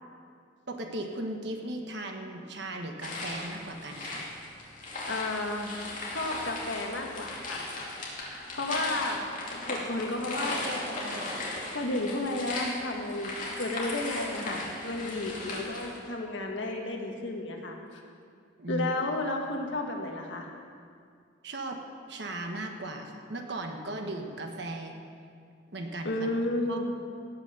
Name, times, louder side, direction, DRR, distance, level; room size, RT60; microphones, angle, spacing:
voice 1, 0.7-4.3 18.6-18.9 21.4-21.8 22.1-24.9 25.7-26.1 26.7-26.8, right 1 dB, 60° right, 3 dB, 1.3 m, -37 dB
sound 1, 3.0-16.0, left 2 dB, 40° left, 2.6 m, -37 dB
voice 2, 5.0-5.7 6.1-7.7 8.3-9.2 9.6-11.2 11.7-13.3 13.6-17.8 18.7-20.5 26.0-26.8, left 2 dB, 70° left, 1 dB, 1.6 m, -32 dB
17.5 x 6.2 x 6.8 m, 2.3 s
head